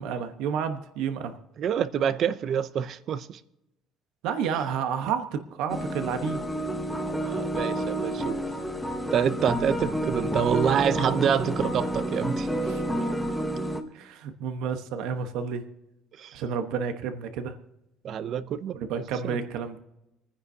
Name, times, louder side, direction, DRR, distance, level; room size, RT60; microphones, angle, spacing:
voice 1, 0.0-1.4 4.2-6.4 12.7-12.8 13.9-15.6 16.3-17.6 18.7-19.8, right 7 dB, 75° right, 1.1 m, -30 dB
voice 2, 1.6-3.4 7.2-8.4 9.1-12.5 16.2-16.4 18.0-18.8 19.2-19.4, right 8 dB, 40° right, 0.5 m, -27 dB
sound 1, 5.7-13.8, right 1 dB, 5° left, 1.0 m, -29 dB
28.5 x 9.8 x 2.8 m
cardioid pair, 165°, 0 cm